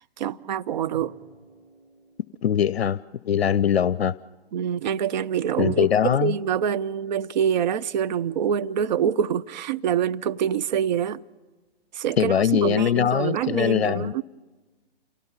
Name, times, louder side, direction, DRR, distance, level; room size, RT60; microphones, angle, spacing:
voice 1, 0.2-1.1 4.5-11.2 11.9-14.2, right 8 dB, 50° right, 0.6 m, -25 dB
sound 1, 0.9-3.2 5.6-8.5, right 2 dB, 70° right, 7.5 m, -46 dB
voice 2, 2.4-3.0 3.3-4.1 5.6-6.3 12.2-14.1, left 9 dB, 85° left, 0.5 m, -22 dB
28.0 x 17.5 x 5.6 m
figure-of-eight pair, 125°, 31 cm